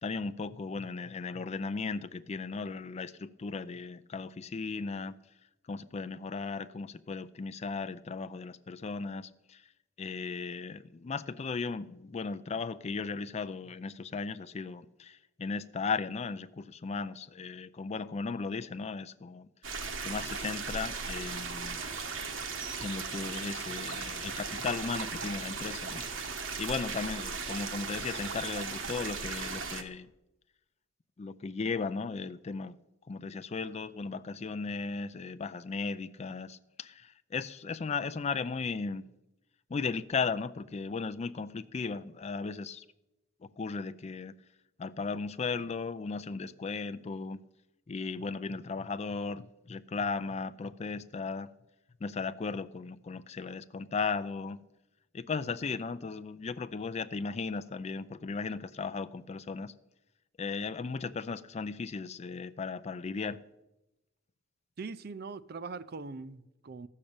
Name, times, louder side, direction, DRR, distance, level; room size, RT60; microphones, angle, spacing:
voice 1, 0.0-5.1 5.7-9.7 10.0-19.5 20.0-21.8 22.8-26.0 26.6-30.1 31.2-32.8 33.1-39.0 39.7-42.9 43.4-44.3 44.8-47.4 47.9-51.5 52.0-54.6 55.1-59.7 60.4-63.4, left 4 dB, 30° left, 0.4 m, -36 dB
sound 1, 19.6-29.8, right 5 dB, 70° right, 1.3 m, -37 dB
voice 2, 64.8-66.9, right 4 dB, 50° right, 0.5 m, -41 dB
13.5 x 6.6 x 8.6 m
head